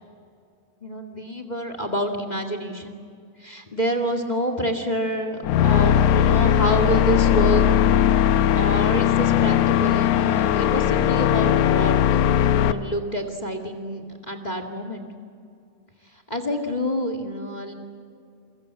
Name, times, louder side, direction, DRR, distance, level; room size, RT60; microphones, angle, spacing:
voice 1, 0.8-2.9 3.4-7.6 8.5-15.1 16.3-17.7, equal, 20° left, 6 dB, 1.2 m, -28 dB
sound 1, 5.4-12.7, left 10 dB, 70° left, 2.0 m, -19 dB
29.5 x 23.0 x 7.7 m, 2.4 s
omnidirectional pair, 4.0 m